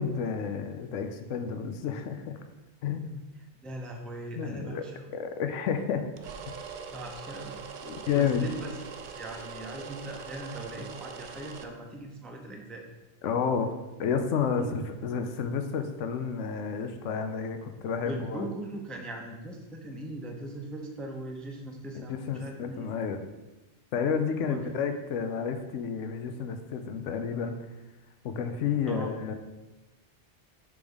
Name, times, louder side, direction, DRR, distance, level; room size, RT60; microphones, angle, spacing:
voice 1, 0.0-2.4 2.8-3.2 4.3-4.8 5.1-6.0 7.8-8.5 13.2-18.5 21.9-23.2 23.9-27.5 28.2-29.3, left 6 dB, 85° left, 7 dB, 0.9 m, -30 dB
voice 2, 3.6-5.1 6.9-7.5 8.1-8.8 9.1-12.9 14.6-14.8 18.0-22.9 24.4-24.7 28.8-29.2, right 1 dB, ahead, 2 dB, 0.4 m, -40 dB
sound 1, 6.2-11.7, right 6 dB, 60° right, 0.5 m, -42 dB
6.2 x 3.5 x 5.2 m, 1.1 s
omnidirectional pair, 1.2 m